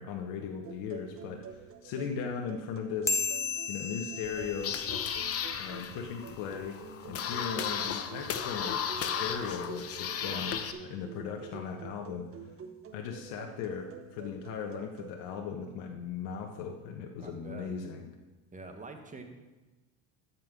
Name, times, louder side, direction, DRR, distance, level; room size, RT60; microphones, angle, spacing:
voice 1, 0.0-3.2 3.7-4.8 5.6-6.8 7.0-12.3 12.9-18.1, left 6 dB, 65° left, 3 dB, 1.3 m, -38 dB
sound 1, 0.6-15.1, right 6 dB, 35° right, 1.1 m, -48 dB
sound 2, 3.1-5.9, left 4 dB, 10° left, 0.4 m, -35 dB
sound 3, 4.2-10.7, left 8 dB, 40° left, 0.9 m, -35 dB
voice 2, 10.2-10.5 17.2-17.7 18.5-19.2, right 3 dB, 20° right, 4 dB, 1.7 m, -45 dB
13.5 x 5.6 x 6.1 m, 1.1 s
supercardioid pair, 90°, 37 cm